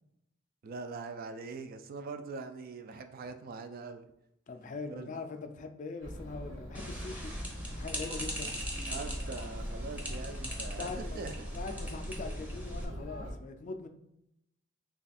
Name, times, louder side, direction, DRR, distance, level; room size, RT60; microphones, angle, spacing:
voice 1, 0.6-4.1 4.9-5.1 8.9-11.3, right 4 dB, 45° right, 8 dB, 0.3 m, -42 dB
voice 2, 4.5-7.3 7.7-8.6 10.8-11.2 11.5-13.9, left 3 dB, 40° left, 7 dB, 0.3 m, -42 dB
Chatter, 6.0-13.3, equal, 85° right, 1.1 m, -43 dB
sound 1, 6.7-12.8, equal, 10° right, 0.6 m, -40 dB
3.2 x 2.3 x 4.1 m, 0.82 s
head